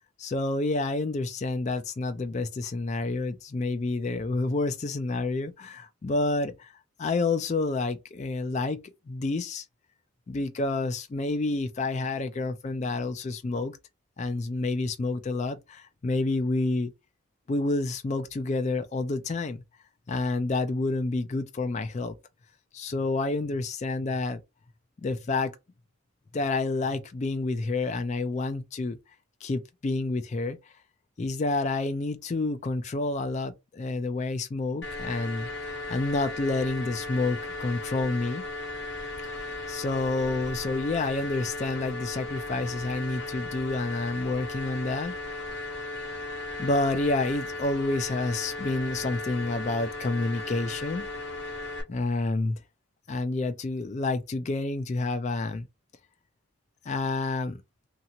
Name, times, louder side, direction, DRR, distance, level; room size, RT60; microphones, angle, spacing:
voice 1, 0.2-6.7 7.0-8.8 9.1-9.6 10.3-13.8 14.2-16.9 17.5-19.6 20.1-22.1 22.7-24.4 25.0-25.5 26.3-29.0 29.4-30.6 31.2-38.4 39.3-45.1 46.6-51.1 51.9-52.6 53.1-55.7 56.9-57.6, left 2 dB, 35° left, 0.3 m, -29 dB
sound 1, 34.8-51.8, left 2 dB, 55° left, 0.8 m, -36 dB
2.8 x 2.4 x 2.8 m
head